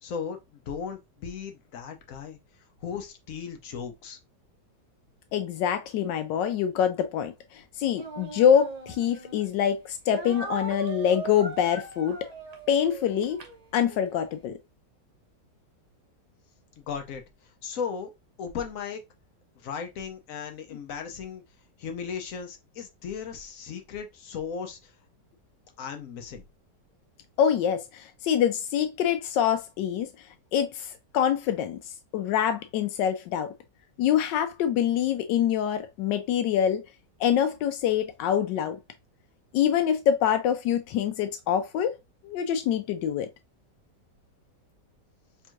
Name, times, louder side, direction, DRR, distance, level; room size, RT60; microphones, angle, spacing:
voice 1, 0.0-2.4 2.8-4.2 16.8-17.2 17.6-18.1 18.4-19.0 19.6-21.4 21.8-24.9 25.8-26.4, left 6 dB, 60° left, 1.1 m, -36 dB
voice 2, 5.3-12.3 12.7-13.4 13.7-14.6 27.4-30.1 30.5-31.8 32.1-33.5 34.0-36.8 37.2-38.8 39.5-41.9 42.2-43.3, left 9 dB, 85° left, 1.2 m, -25 dB
Speech, 7.9-9.5 10.1-14.1, right 3 dB, 45° right, 0.5 m, -39 dB
3.5 x 2.4 x 4.5 m
omnidirectional pair, 1.9 m